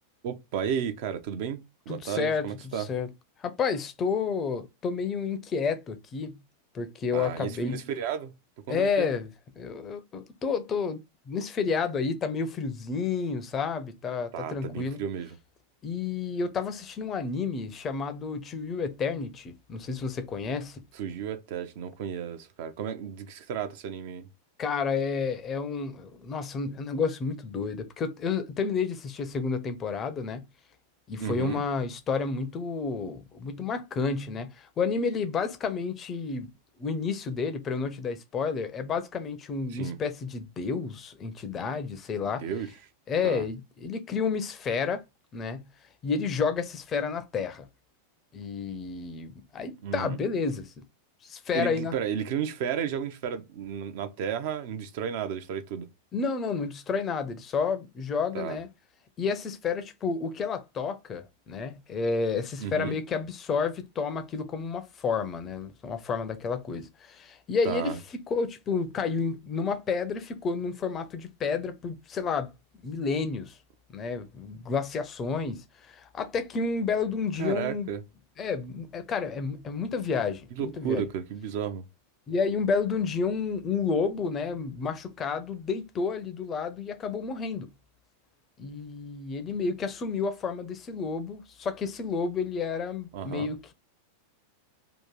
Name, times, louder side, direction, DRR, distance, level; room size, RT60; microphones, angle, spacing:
voice 1, 0.2-2.9 7.1-8.3 8.7-9.1 14.3-15.4 20.9-24.3 31.2-31.6 39.7-40.0 42.2-42.7 43.2-43.5 49.8-50.2 51.5-55.9 58.3-58.6 62.6-63.0 67.6-68.0 77.4-78.0 80.5-81.8 93.1-93.5, right 8 dB, 50° right, 0.6 m, -33 dB
voice 2, 1.9-2.5 2.8-3.1 3.4-6.4 6.7-7.8 8.7-9.3 9.6-15.0 15.8-20.8 24.6-30.4 31.1-36.5 36.8-42.5 43.1-45.0 45.3-45.7 46.0-47.6 48.3-50.7 51.2-51.9 56.1-58.7 59.2-67.9 68.3-72.5 72.8-73.6 73.9-77.9 78.4-81.0 82.3-87.7 88.6-93.7, left 5 dB, 25° left, 0.6 m, -30 dB
2.9 x 2.5 x 3.7 m
figure-of-eight pair, 90°, 0 cm